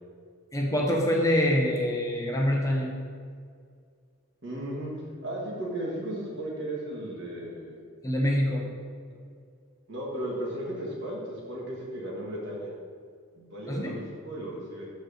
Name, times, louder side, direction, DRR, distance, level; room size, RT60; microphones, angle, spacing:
voice 1, 0.5-2.9 8.0-8.7 13.7-14.0, equal, 15° left, -1 dB, 0.7 m, -25 dB
voice 2, 4.4-5.0 5.2-7.8 9.9-12.7 13.3-14.9, right 1 dB, 50° right, -4 dB, 1.9 m, -35 dB
6.3 x 4.4 x 6.6 m, 2.1 s
head